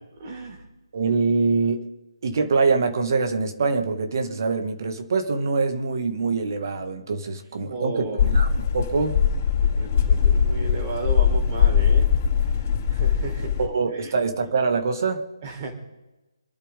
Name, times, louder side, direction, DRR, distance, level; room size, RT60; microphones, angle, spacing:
voice 1, 0.2-0.6 7.6-8.4 9.6-12.1 12.9-13.5 13.9-14.2 15.4-15.7, right 3 dB, 30° right, 1 dB, 4.4 m, -34 dB
voice 2, 0.9-1.8 2.2-8.5 8.7-9.2 13.6-15.2, right 4 dB, 45° right, 6 dB, 2.3 m, -24 dB
sound 1, 8.2-13.7, left 7 dB, 35° left, 4.7 m, -21 dB
27.0 x 12.0 x 3.9 m, 1.0 s
figure-of-eight pair, 150°, 3 cm